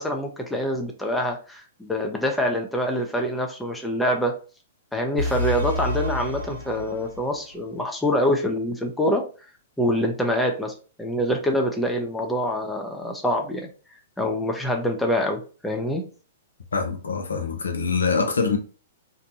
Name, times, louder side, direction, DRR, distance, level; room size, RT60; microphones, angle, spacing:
voice 1, 0.0-4.3 4.9-9.2 9.8-10.7 11.0-13.7 14.2-16.0, equal, 5° left, 0.6 m, -25 dB
sound 1, 5.2-7.4, left 1 dB, 80° right, 0.6 m, -29 dB
voice 2, 16.7-18.6, left 5 dB, 85° left, 0.6 m, -24 dB
2.6 x 2.2 x 2.8 m
hypercardioid pair, 115°, 0 cm